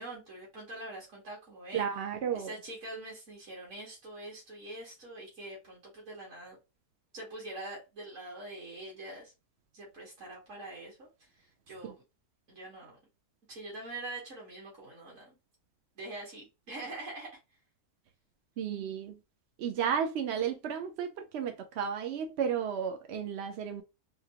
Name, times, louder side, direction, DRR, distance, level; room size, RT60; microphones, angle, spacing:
voice 1, 0.0-1.8 2.3-6.6 7.1-9.3 9.7-11.1 11.7-12.0 12.5-13.0 13.5-15.4 16.0-17.3, right 2 dB, 50° right, 1.9 m, -44 dB
voice 2, 1.7-2.5 11.8-11.9 18.6-19.2 19.6-23.8, right 8 dB, 70° right, 0.6 m, -33 dB
3.7 x 3.3 x 2.8 m
omnidirectional pair, 1.7 m